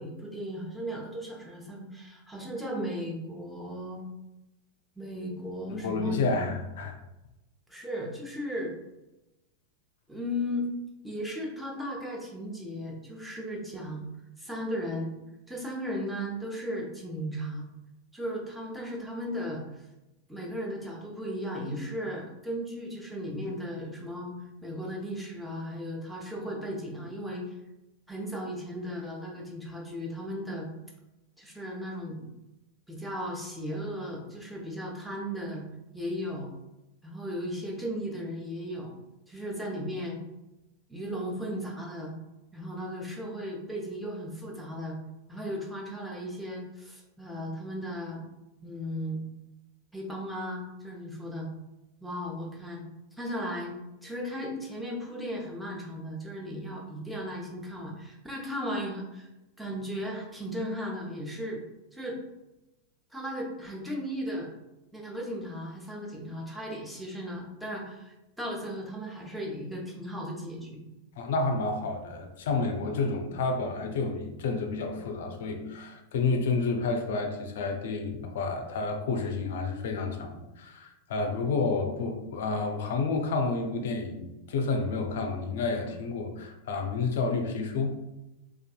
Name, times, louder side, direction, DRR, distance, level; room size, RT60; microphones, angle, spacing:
voice 1, 0.0-4.1 5.0-6.4 7.7-8.7 10.1-10.7 11.0-14.0 14.4-15.1 15.5-17.7 18.1-19.9 20.3-24.3 24.6-27.5 28.1-30.7 31.4-32.3 32.9-35.6 35.9-36.5 37.0-39.0 39.3-40.2 40.9-42.1 42.5-45.0 45.3-48.3 48.6-49.2 49.9-51.5 52.0-52.8 53.2-53.7 54.0-59.3 59.6-61.6 61.9-62.2 63.1-64.5 64.9-70.8, equal, 5° right, -2 dB, 0.7 m, -36 dB
voice 2, 5.7-7.0 71.2-88.0, left 3 dB, 65° left, 5 dB, 0.4 m, -30 dB
2.5 x 2.3 x 2.4 m, 0.97 s
hypercardioid pair, 95°, 0 cm